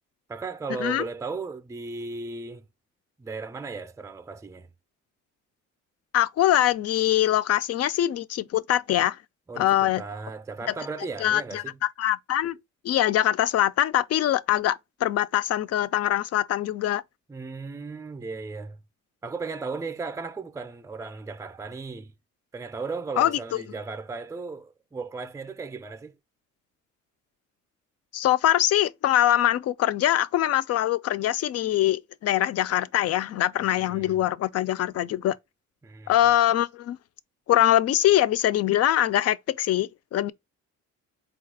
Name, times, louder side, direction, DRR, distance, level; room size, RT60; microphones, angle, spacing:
voice 1, 0.3-2.6 3.2-4.7 9.5-11.8 17.3-18.8 19.2-22.1 22.5-26.1 33.6-34.2 35.8-36.1, right 4 dB, 10° right, 0.5 m, -36 dB
voice 2, 6.1-9.2 9.6-10.0 11.2-11.6 12.0-12.6 12.8-17.0 23.2-23.4 28.1-35.4 36.1-37.0 37.5-40.3, left 12 dB, 55° left, 0.4 m, -23 dB
4.2 x 2.4 x 4.6 m
cardioid pair, 90°, 30 cm